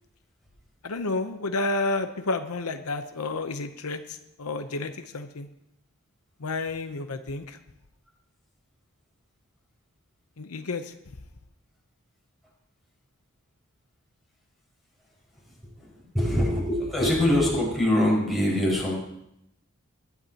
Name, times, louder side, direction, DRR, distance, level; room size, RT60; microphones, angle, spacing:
voice 1, 0.8-5.5 6.4-7.6 10.4-10.9, left 3 dB, 80° left, 8 dB, 0.8 m, -30 dB
voice 2, 16.1-19.0, left 1 dB, ahead, -5 dB, 5.3 m, -23 dB
20.5 x 10.5 x 2.9 m, 0.81 s
head